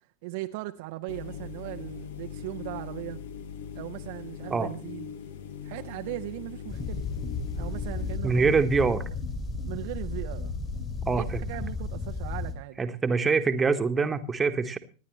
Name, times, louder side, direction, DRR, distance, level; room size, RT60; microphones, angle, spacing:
voice 1, 0.2-3.2 3.8-5.1 5.6-7.0 7.5-8.5 9.0-9.2 9.6-10.6 11.1-12.8, right 18 dB, 50° right, 0.7 m, -38 dB
sound 1, 1.1-8.2, left 7 dB, 55° left, 1.2 m, -41 dB
sound 2, 6.7-12.5, left 3 dB, 25° left, 2.9 m, -33 dB
voice 2, 8.2-9.0 11.1-11.4 12.8-14.8, right 4 dB, 15° right, 1.3 m, -24 dB
25.5 x 10.5 x 3.2 m
figure-of-eight pair, 90°, 0 cm